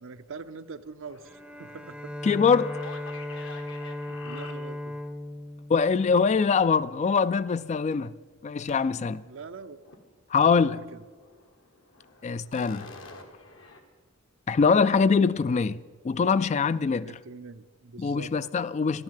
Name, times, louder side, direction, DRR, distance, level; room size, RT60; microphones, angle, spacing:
voice 1, 0.0-2.1 4.1-5.0 9.2-9.8 10.5-11.0 15.5-15.6 17.0-18.3, right 4 dB, 70° right, 0.6 m, -43 dB
sound 1, 1.1-5.0 8.7-9.1 9.5-10.1 10.4-10.5 10.9-13.8, left 4 dB, 70° left, 1.4 m, -48 dB
Bowed string instrument, 1.2-6.8, left 1 dB, 5° right, 0.6 m, -37 dB
voice 2, 2.2-2.8 5.7-8.1 8.4-9.2 10.3-10.8 12.2-12.9 14.5-15.8 16.0-17.2 18.0-19.0, left 5 dB, 35° left, 0.3 m, -23 dB
12.5 x 10.5 x 7.4 m
head